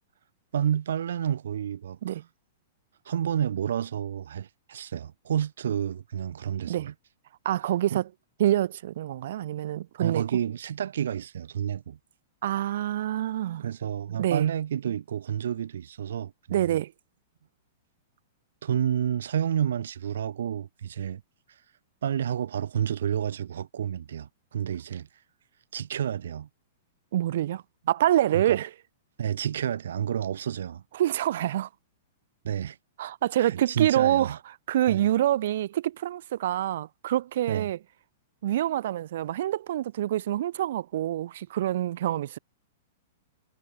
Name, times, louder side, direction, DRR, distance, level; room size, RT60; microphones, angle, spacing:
voice 1, 0.5-2.2 3.1-6.9 7.9-8.0 10.0-12.0 13.6-16.8 18.6-21.2 22.0-25.1 25.7-26.5 28.3-28.6 29.2-30.8 32.4-32.8 33.4-34.4 34.9-35.1 37.5-37.7, right 9 dB, 80° right, 2.0 m, -30 dB
voice 2, 7.4-8.1 8.4-10.2 12.4-13.7 14.2-14.5 16.5-16.9 27.1-28.7 30.9-31.7 33.0-34.4 34.7-37.8 38.4-42.4, right 12 dB, 55° right, 0.5 m, -26 dB
supercardioid pair, 175°, 0 cm